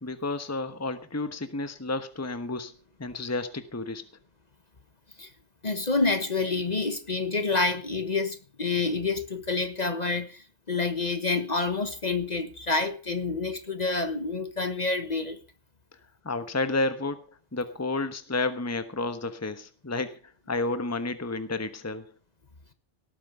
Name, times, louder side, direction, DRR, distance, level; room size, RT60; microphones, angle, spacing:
voice 1, 0.0-2.7 3.0-4.0 16.2-17.2 17.5-20.2 20.5-22.1, left 2 dB, 15° left, 1.2 m, -31 dB
voice 2, 5.6-15.4, left 3 dB, 35° left, 1.3 m, -28 dB
18.5 x 8.7 x 5.4 m
omnidirectional pair, 1.2 m